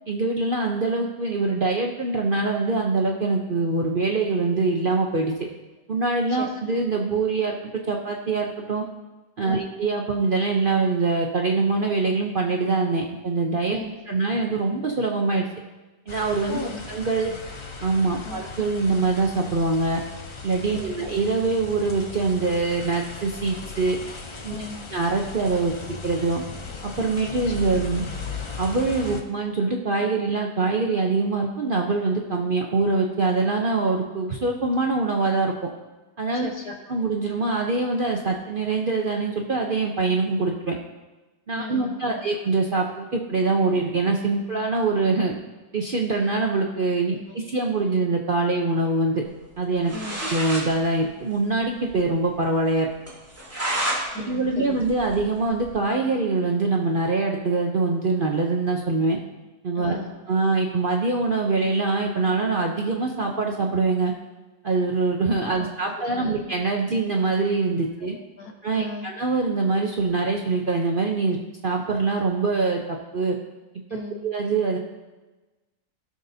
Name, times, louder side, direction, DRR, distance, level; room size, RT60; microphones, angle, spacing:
voice 1, 0.1-5.3 5.9-8.8 9.4-13.8 14.1-15.5 16.1-16.6 16.9-17.3 17.8-20.0 20.4-24.0 24.4-24.6 24.9-26.4 26.8-28.0 28.6-35.7 36.2-36.5 36.9-40.8 41.5-45.3 45.7-49.2 49.6-49.9 50.3-52.9 54.3-59.2 59.6-64.1 64.6-68.2 68.6-71.4 71.6-73.4 74.2-74.8, right 3 dB, 50° right, 1 dB, 0.6 m, -24 dB
sound 1, 16.1-29.2, left 4 dB, 45° left, 0.3 m, -37 dB
voice 2, 16.5-16.8 17.2-17.4 18.2-18.5 20.7-21.0 24.5-24.9 27.6-27.7 36.3-37.0 41.6-42.3 47.1-47.2 49.9-50.2 54.1-54.8 59.7-60.1 65.6-65.7 66.0-66.4 68.0-69.1 73.9-74.2, left 3 dB, 70° left, 2 dB, 1.7 m, -37 dB
sound 2, 49.6-49.7 49.9-50.7 51.0-51.1 51.3-51.4 51.9-52.0 52.3-52.4 53.1-54.0 54.4-55.8, right 1 dB, 10° right, 2.5 m, -30 dB
16.0 x 6.4 x 2.7 m, 1.2 s
omnidirectional pair, 1.7 m